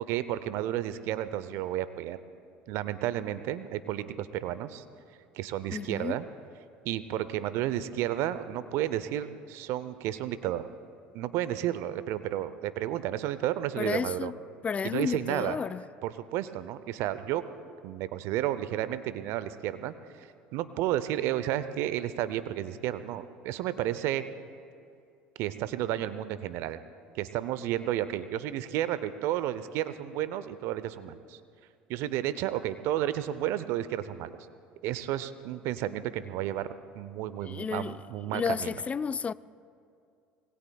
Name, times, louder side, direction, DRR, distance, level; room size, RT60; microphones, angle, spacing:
voice 1, 0.0-2.2 2.7-4.8 5.3-6.3 6.8-10.7 11.1-14.3 14.8-15.6 16.0-17.4 17.8-20.3 20.5-24.2 25.4-26.8 27.1-31.4 31.9-34.3 34.8-36.7 36.9-38.7, right 12 dB, 65° right, 0.7 m, -32 dB
voice 2, 5.7-6.2 13.8-14.4 14.6-15.8 37.4-38.0 38.3-39.3, left 6 dB, 25° left, 0.3 m, -32 dB
25.5 x 20.0 x 2.3 m
hypercardioid pair, 70°, 5 cm